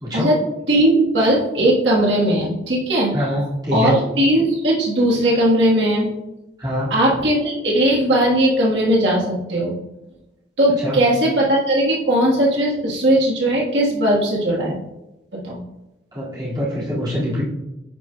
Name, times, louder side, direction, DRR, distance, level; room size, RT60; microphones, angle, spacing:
voice 1, 0.1-3.4 3.7-6.1 6.9-9.8 10.6-14.8 15.3-15.6, right 1 dB, 90° right, -4 dB, 1.4 m, -18 dB
voice 2, 3.1-4.0 6.6-6.9 10.8-11.0 16.1-17.4, equal, 20° right, -8 dB, 2.2 m, -23 dB
10.0 x 4.5 x 2.3 m, 0.94 s
head